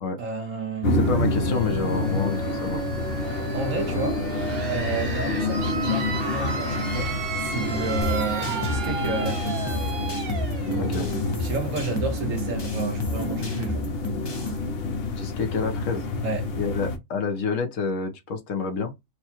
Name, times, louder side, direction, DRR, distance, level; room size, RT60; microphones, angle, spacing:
voice 1, 0.2-1.0 3.5-4.2 4.7-9.6 11.4-13.9 16.2-16.5, right 4 dB, 80° right, 1.6 m, -31 dB
sound 1, 0.8-17.0, left 2 dB, 55° left, 0.9 m, -28 dB
voice 2, 0.9-2.8 10.8-11.1 15.2-16.0 16.6-18.9, left 5 dB, 70° left, 1.3 m, -28 dB
sound 2, 1.0-12.5, right 4 dB, 45° right, 1.3 m, -34 dB
sound 3, 8.0-14.6, left 1 dB, 25° left, 0.6 m, -34 dB
4.7 x 2.2 x 2.9 m
omnidirectional pair, 1.4 m